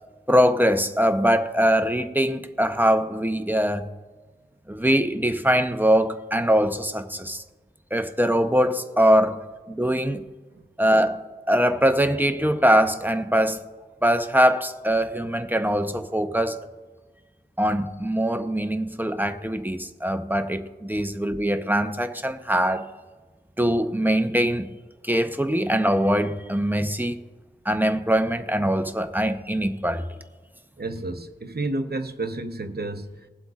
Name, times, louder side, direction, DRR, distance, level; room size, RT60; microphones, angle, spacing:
voice 1, 0.3-3.9 4.7-7.4 7.9-10.2 10.8-11.2 11.5-13.7 14.0-16.6 17.6-22.9 23.6-24.7 25.0-27.2 27.6-30.0, equal, 10° right, 0.8 m, -22 dB
voice 2, 30.8-33.3, right 2 dB, 60° right, 0.8 m, -31 dB
21.5 x 7.8 x 2.5 m
wide cardioid pair, 65°, 19 cm